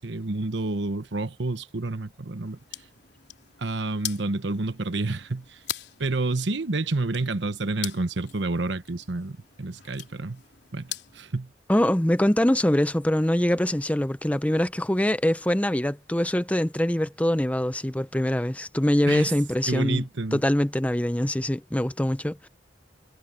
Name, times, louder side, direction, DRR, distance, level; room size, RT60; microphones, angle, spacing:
voice 1, 0.0-2.6 3.6-5.6 6.0-10.4 10.7-11.5 19.1-19.3 19.7-20.4, right 2 dB, 70° right, 1.1 m, -29 dB
sound 1, 2.4-11.3, left 12 dB, 65° left, 4.0 m, -41 dB
voice 2, 11.7-20.1 20.3-22.5, left 1 dB, 10° left, 0.6 m, -24 dB
head